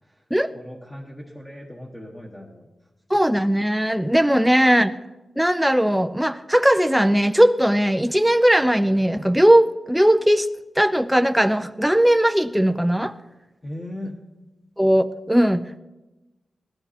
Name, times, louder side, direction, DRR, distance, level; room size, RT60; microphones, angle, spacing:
voice 1, 0.0-2.7 13.6-14.2, left 1 dB, 15° left, -2 dB, 1.4 m, -38 dB
voice 2, 3.1-4.9 5.4-10.5 10.8-13.1 14.8-15.8, equal, 5° right, 9 dB, 0.4 m, -18 dB
17.5 x 12.5 x 4.3 m, 1.1 s
wide cardioid pair, 140°, 0 cm